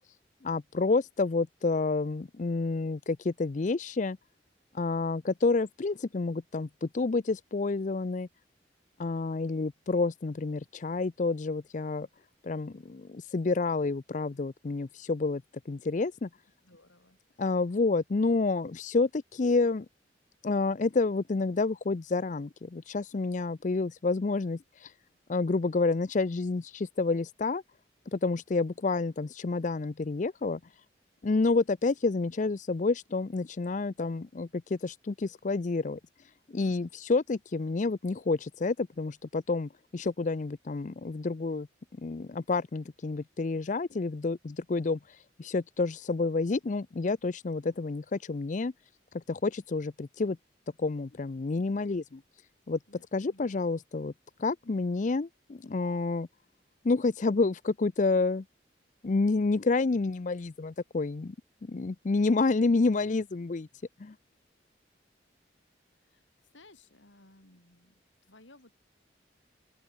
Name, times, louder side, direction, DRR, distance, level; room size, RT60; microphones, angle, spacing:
voice 1, 0.4-4.2 4.7-8.3 9.0-12.1 12.4-16.3 17.4-19.9 20.4-24.9 25.3-27.6 28.1-30.6 31.2-36.0 36.5-41.7 42.0-48.7 49.1-50.4 50.8-52.2 52.7-52.8 53.1-54.1 54.4-56.3 56.8-58.4 59.0-61.3 61.6-63.7 64.0-64.1, left 3 dB, 40° left, 0.5 m, -29 dB
voice 2, 16.6-17.4 36.6-36.9 52.9-53.5 66.0-66.2 66.5-68.8, left 2 dB, 90° left, 5.8 m, -58 dB
open air
head